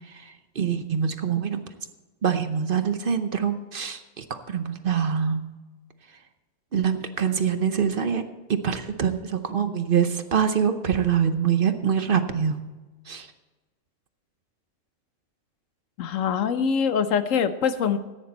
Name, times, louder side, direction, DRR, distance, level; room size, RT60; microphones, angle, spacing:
voice 1, 0.1-1.6 2.2-5.5 6.7-8.2 8.5-12.6 13.1-13.3, right 7 dB, 50° right, 9 dB, 0.9 m, -25 dB
voice 2, 16.0-18.0, left 7 dB, 85° left, 11 dB, 1.2 m, -24 dB
14.5 x 9.6 x 4.1 m, 1.2 s
omnidirectional pair, 1.3 m